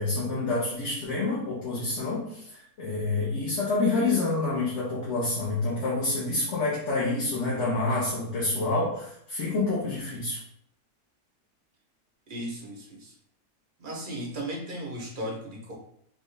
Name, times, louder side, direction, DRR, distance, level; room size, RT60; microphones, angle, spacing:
voice 1, 0.0-10.4, left 3 dB, 50° left, -7 dB, 1.1 m, -28 dB
voice 2, 12.3-13.1 13.8-15.7, right 1 dB, 45° right, -2 dB, 0.6 m, -36 dB
4.0 x 2.6 x 3.2 m, 0.69 s
omnidirectional pair, 1.7 m